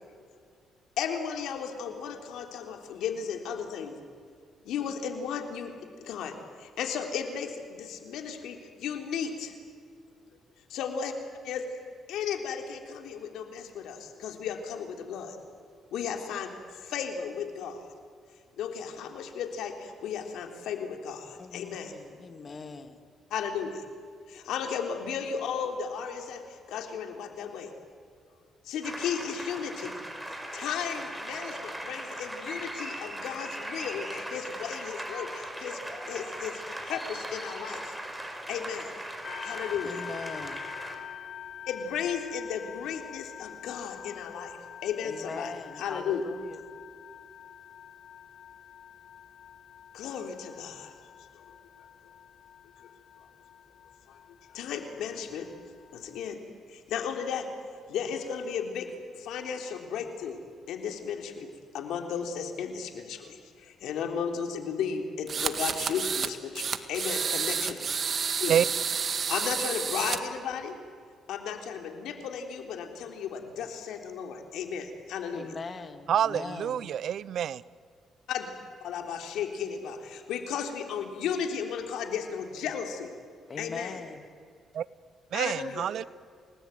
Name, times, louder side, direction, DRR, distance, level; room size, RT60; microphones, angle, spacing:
voice 1, 1.0-4.0 4.6-9.6 10.7-11.1 11.4-11.6 12.1-15.4 15.9-17.8 18.6-21.9 23.3-23.8 24.3-27.7 28.6-30.0 30.3-35.8 36.1-37.9 38.5-38.9 39.4-40.0 41.7-45.5 45.8-46.2 49.9-50.9 51.4-51.5 54.1-54.2 54.5-55.5 55.9-56.4 56.7-57.5 57.9-58.9 59.1-60.4 60.7-61.5 61.7-67.8 68.4-68.6 69.3-70.8 71.3-75.5 78.3-78.5 78.8-83.1 83.6-84.0 85.3-85.9, left 7 dB, 85° left, 3.6 m, -34 dB
voice 2, 21.4-23.0 39.8-40.7 45.0-46.6 75.3-76.9 83.5-84.3, left 4 dB, 40° left, 2.4 m, -41 dB
sound 1, 28.8-40.9, right 1 dB, 5° right, 4.9 m, -39 dB
sound 2, 39.2-56.3, left 9 dB, 60° left, 1.1 m, -46 dB
sound 3, 65.3-66.3 66.6-70.2, right 6 dB, 50° right, 1.8 m, -30 dB
voice 3, 76.1-77.6 84.7-84.9 85.3-86.0, right 9 dB, 65° right, 0.7 m, -27 dB
29.5 x 20.0 x 9.3 m
cardioid pair, 90°, 0 cm